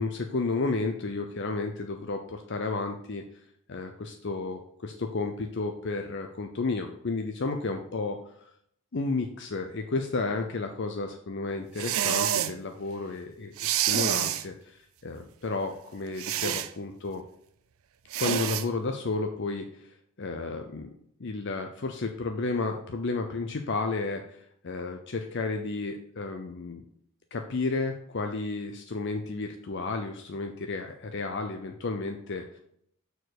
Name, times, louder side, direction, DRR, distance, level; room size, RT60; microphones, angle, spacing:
voice 1, 0.0-3.2 3.7-8.5 8.9-17.2 18.2-20.9 21.2-26.8 27.3-32.6, left 3 dB, 50° left, 5 dB, 0.6 m, -32 dB
sound 1, 11.8-12.5 13.6-14.4 16.2-16.7 18.1-18.6, right 11 dB, 70° right, 0.5 m, -27 dB
6.5 x 4.6 x 6.5 m, 0.68 s
head